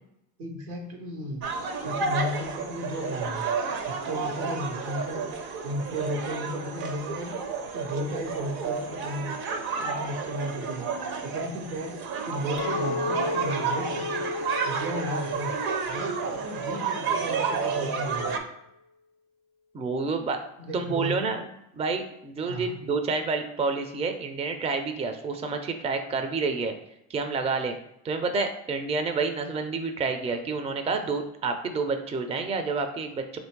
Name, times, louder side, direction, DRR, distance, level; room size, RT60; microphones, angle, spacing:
voice 1, 0.4-1.4 1.8-3.5 3.8-5.3 5.6-7.4 7.7-9.3 9.8-10.9 11.1-11.9 12.2-14.2 14.6-15.5 15.8-18.4 20.6-21.3 22.5-22.8, equal, 90° right, 0 dB, 1.2 m, -34 dB
sound 1, 1.4-18.4, right 5 dB, 55° right, 0.7 m, -31 dB
Chink clink, 12.6-17.8, left 4 dB, 55° left, 0.5 m, -35 dB
voice 2, 19.7-20.4 20.7-21.4 21.8-26.7 27.1-27.8 28.0-33.4, right 4 dB, 15° right, 6 dB, 0.4 m, -29 dB
3.1 x 2.6 x 4.5 m, 0.82 s
hypercardioid pair, 75°, 44 cm